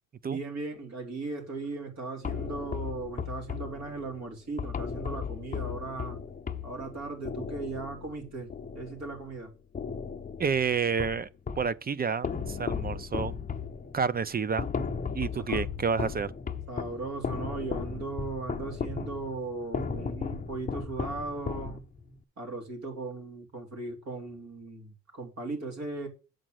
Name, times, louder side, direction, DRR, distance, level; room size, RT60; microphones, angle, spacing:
voice 1, 0.2-6.2 6.6-9.5 15.5-15.6 16.7-21.8 22.4-26.1, right 3 dB, 65° right, 3.2 m, -37 dB
sound 1, 2.2-9.4 9.7-11.8 12.2-22.2, left 6 dB, 25° left, 0.8 m, -36 dB
voice 2, 10.4-11.3 11.6-13.3 13.9-14.7 15.1-16.3, right 6 dB, 30° right, 0.6 m, -29 dB
7.6 x 5.2 x 6.4 m
cardioid pair, 90°, 30 cm